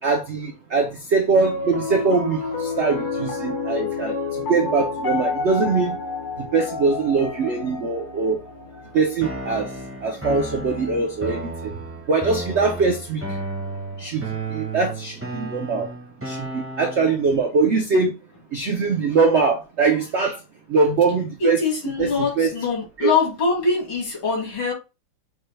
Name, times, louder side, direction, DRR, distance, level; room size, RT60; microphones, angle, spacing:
voice 1, 0.0-6.0 6.4-8.4 8.9-9.7 10.0-11.7 12.1-13.4 14.0-15.9 16.2-18.1 18.5-20.4 20.7-21.6 22.0-22.5 23.0-23.1, right 4 dB, 80° right, 0.6 m, -22 dB
Piano, 1.3-11.7, left 4 dB, 60° left, 0.5 m, -30 dB
sound 1, 9.2-17.2, right 2 dB, 15° right, 0.5 m, -33 dB
voice 2, 21.4-24.7, left 4 dB, 75° left, 2.7 m, -23 dB
6.5 x 2.2 x 3.2 m
omnidirectional pair, 2.1 m